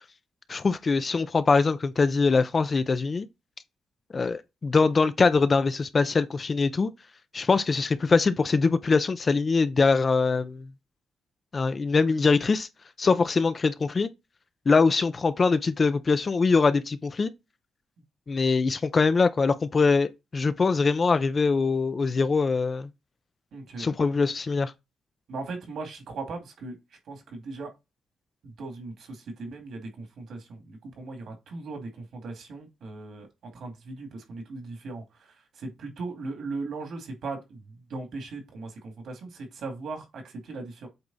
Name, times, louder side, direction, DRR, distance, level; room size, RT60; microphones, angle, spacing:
voice 1, 0.5-3.3 4.1-6.9 7.3-10.7 11.5-12.7 13.0-14.1 14.7-17.3 18.3-22.9 23.8-24.7, left 4 dB, 30° left, 0.5 m, -23 dB
voice 2, 23.5-23.9 25.3-26.8 27.1-27.7 28.4-33.3 33.5-37.6 37.9-40.9, right 3 dB, 65° right, 2.3 m, -38 dB
8.0 x 3.5 x 4.0 m
cardioid pair, 145°, 0 cm